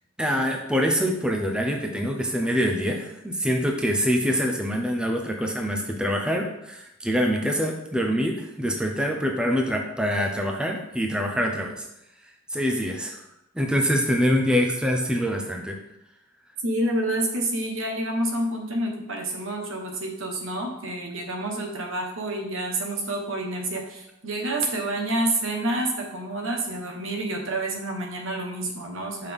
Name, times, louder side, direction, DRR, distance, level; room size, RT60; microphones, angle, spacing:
voice 1, 0.2-11.9 12.5-13.2 13.5-15.8, equal, 5° right, 1 dB, 0.6 m, -25 dB
voice 2, 16.6-29.3, right 1 dB, 75° right, 2 dB, 1.2 m, -28 dB
6.2 x 5.5 x 3.5 m, 0.85 s
head